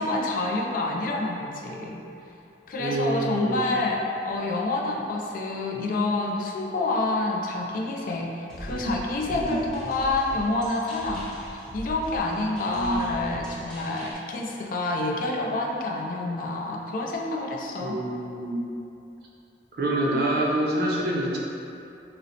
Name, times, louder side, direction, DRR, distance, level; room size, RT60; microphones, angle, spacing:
voice 1, 0.0-2.0 2.7-18.0, left 2 dB, 50° left, 0 dB, 0.3 m, -28 dB
voice 2, 2.8-3.6 8.7-9.0 9.3-9.5 12.7-13.0 17.8-18.6 19.8-21.4, right 1 dB, 60° right, -3 dB, 0.5 m, -27 dB
sound 1, 8.5-14.1, equal, 5° left, 0.7 m, -40 dB
3.7 x 2.0 x 2.8 m, 2.8 s
head